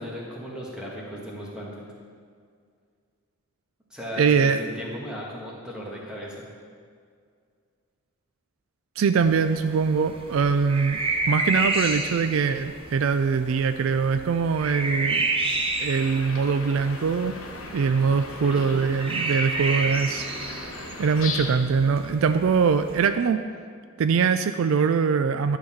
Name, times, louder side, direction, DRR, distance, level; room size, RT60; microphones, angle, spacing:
voice 1, 0.0-1.8 3.9-6.4 18.4-18.8, equal, 5° right, -4 dB, 1.6 m, -36 dB
voice 2, 4.2-4.6 9.0-11.0 11.3-15.3 15.8-17.3 17.7-20.3 21.0-23.4 24.0-25.6, right 5 dB, 65° right, 10 dB, 0.3 m, -22 dB
sound 1, 9.2-23.0, right 2 dB, 25° right, 0.7 m, -31 dB
sound 2, 15.9-21.5, left 4 dB, 65° left, 1.0 m, -38 dB
11.5 x 4.1 x 7.2 m, 2.1 s
head